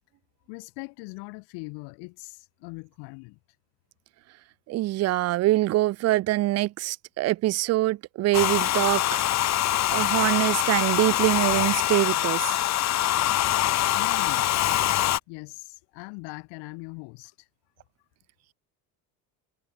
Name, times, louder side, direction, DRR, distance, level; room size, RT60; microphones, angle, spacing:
voice 1, 0.5-3.4 14.0-14.5 15.3-17.5, left 31 dB, 75° left, 7.0 m, -41 dB
voice 2, 4.7-9.2 9.9-12.6, right 16 dB, 40° right, 0.7 m, -24 dB
Domestic sounds home sounds, 8.3-15.2, left 13 dB, 40° left, 2.0 m, -24 dB
cardioid pair, 155°, 40 cm